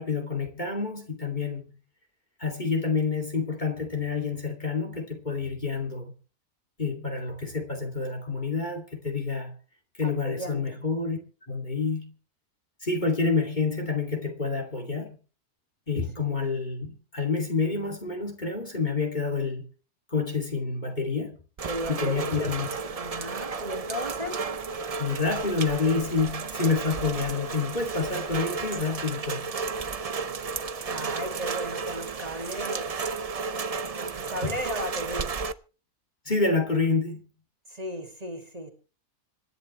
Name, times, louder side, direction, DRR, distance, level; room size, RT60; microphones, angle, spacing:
voice 1, 0.0-1.7 2.4-6.1 6.8-9.5 10.0-11.2 11.5-12.1 12.8-15.2 15.9-19.6 20.1-21.4 21.9-22.7 25.0-29.5 36.3-37.2, left 4 dB, 30° left, 2.8 m, -28 dB
voice 2, 10.0-10.8 16.2-16.4 21.6-22.6 22.9-24.4 30.9-33.0 33.5-35.4 37.7-38.7, equal, 25° right, 2.6 m, -36 dB
Rain, 21.6-35.5, right 4 dB, 45° right, 0.5 m, -33 dB
26.5 x 11.0 x 3.2 m
omnidirectional pair, 1.6 m